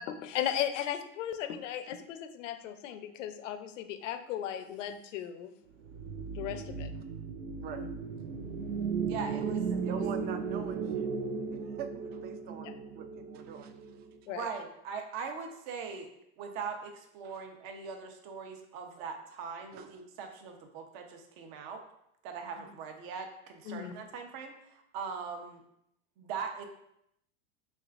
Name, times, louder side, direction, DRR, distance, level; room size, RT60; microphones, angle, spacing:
voice 1, 0.0-5.5 6.3-6.9 12.6-12.7 14.3-14.5 22.6-22.7 23.7-23.9, left 10 dB, 80° left, 9 dB, 0.6 m, -36 dB
sound 1, 5.8-14.2, right 5 dB, 90° right, 0.6 m, -36 dB
voice 2, 7.6-7.9 9.7-11.1 11.5-14.0 17.2-17.4 19.7-20.0, right 6 dB, 30° right, 8 dB, 0.4 m, -44 dB
voice 3, 9.1-10.0 14.3-16.1 16.4-21.8 22.2-25.6 26.2-26.7, right 5 dB, 55° right, 5 dB, 0.9 m, -41 dB
5.3 x 3.3 x 2.5 m, 0.77 s
supercardioid pair, 120°, 37 cm